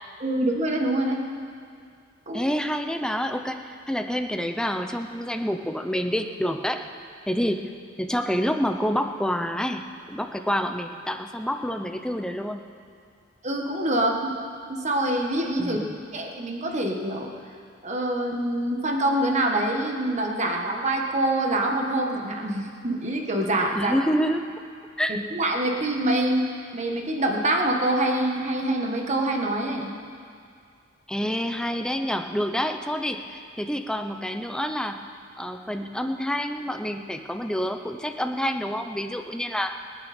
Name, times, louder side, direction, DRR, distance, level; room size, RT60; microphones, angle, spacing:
voice 1, 0.2-1.2 2.3-2.4 13.4-14.1 14.7-15.8 16.1-17.3 17.8-23.9 25.1-26.4 26.7-29.9, right 1 dB, 35° right, 1 dB, 1.6 m, -25 dB
voice 2, 2.3-6.8 7.3-7.7 8.0-12.6 15.6-16.0 23.8-24.5 25.0-25.1 31.1-35.0 35.4-39.7, equal, 5° left, 6 dB, 0.7 m, -28 dB
26.5 x 9.0 x 4.4 m, 2.3 s
head